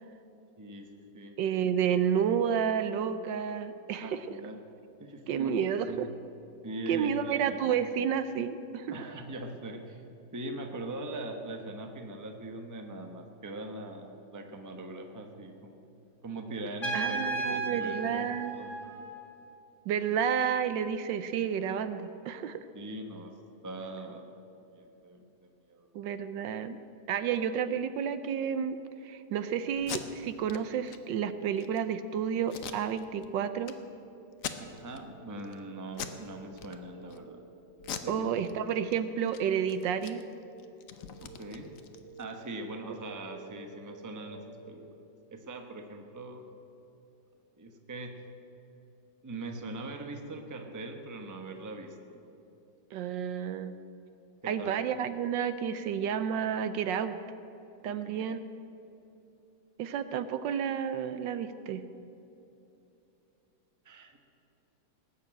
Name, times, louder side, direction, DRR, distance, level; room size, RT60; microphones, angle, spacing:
voice 1, 0.6-1.4 4.0-4.6 5.0-5.5 5.9-6.1 6.6-7.6 8.9-10.0 10.3-15.8 16.2-18.2 18.5-18.8 22.7-23.3 23.6-24.3 24.7-25.9 34.6-37.4 38.0-38.3 41.2-41.7 42.2-44.8 45.3-46.4 47.6-48.1 49.2-52.2 54.4-54.7 58.0-58.3 63.8-64.2, right 2 dB, 15° right, 4 dB, 0.8 m, -41 dB
voice 2, 1.4-4.2 5.3-6.1 6.9-8.9 16.9-18.5 19.9-22.6 25.9-26.8 27.1-28.8 29.0-33.8 38.1-40.2 52.9-53.8 54.5-57.2 57.8-58.4 59.8-61.8, right 8 dB, 75° right, 11 dB, 1.3 m, -30 dB
Trumpet, 16.8-19.5, right 3 dB, 25° left, 2.2 m, -34 dB
Packing tape duct tape, 29.7-30.0 30.5-30.6 30.9-31.0 31.4-31.8 32.5-33.3 33.6-33.7 34.3-35.0 35.4-35.6 35.9-36.2 36.5-37.2 37.8-38.9 39.2-39.4 39.7-42.3, left 8 dB, 55° left, 1.0 m, -41 dB
sound 1, 33.6-44.8, right 3 dB, 80° left, 3.1 m, -52 dB
18.5 x 7.1 x 8.9 m, 2.8 s
omnidirectional pair, 2.1 m